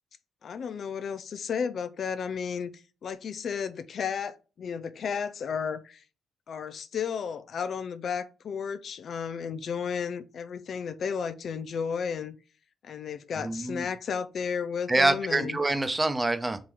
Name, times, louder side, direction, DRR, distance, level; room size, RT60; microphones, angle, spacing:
voice 1, 0.4-6.0 6.5-12.4 12.8-15.6, left 6 dB, 55° left, 0.4 m, -33 dB
voice 2, 13.4-13.9 14.9-16.6, right 2 dB, 20° right, 0.8 m, -26 dB
3.9 x 2.8 x 4.7 m
hypercardioid pair, 45°, 0 cm